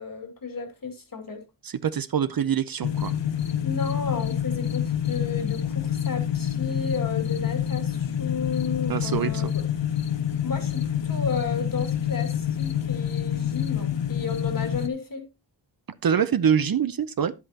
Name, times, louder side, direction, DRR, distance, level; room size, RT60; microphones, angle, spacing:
voice 1, 0.0-1.4 3.6-9.6 10.4-15.3, left 5 dB, 50° left, 2.3 m, -33 dB
voice 2, 1.8-3.1 8.9-9.5 16.0-17.3, right 8 dB, 55° right, 0.6 m, -24 dB
sound 1, 2.8-14.9, left 9 dB, 80° left, 1.0 m, -27 dB
10.5 x 8.3 x 2.8 m
wide cardioid pair, 125°, 43 cm